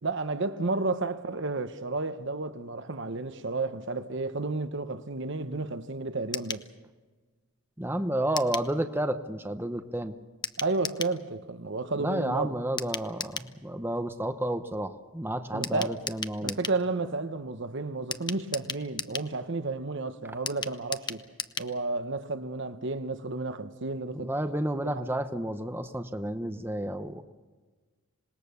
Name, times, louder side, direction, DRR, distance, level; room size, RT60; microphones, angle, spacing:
voice 1, 0.0-6.6 10.6-12.6 15.5-15.9 16.4-21.2 21.6-24.3 24.9-25.0, right 3 dB, 60° right, 1.1 m, -32 dB
sound 1, 6.3-6.7 8.4-8.7 10.4-11.2 12.8-13.5 15.6-16.8 18.1-19.3 20.5-21.7 22.0-22.1 22.4-22.5, left 5 dB, 20° left, 0.7 m, -36 dB
voice 2, 7.8-10.2 12.0-16.6 24.1-27.2, right 1 dB, 10° right, 0.8 m, -31 dB
26.5 x 20.0 x 7.0 m
head